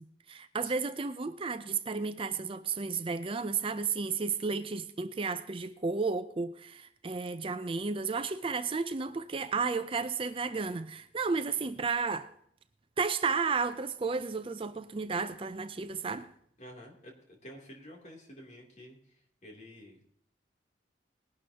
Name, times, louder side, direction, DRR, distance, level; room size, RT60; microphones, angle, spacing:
voice 1, 0.0-12.3 13.0-16.3, right 4 dB, 30° right, 0.5 m, -33 dB
voice 2, 16.6-19.0 19.4-20.2, equal, 40° left, 3.0 m, -50 dB
20.0 x 11.5 x 2.9 m
head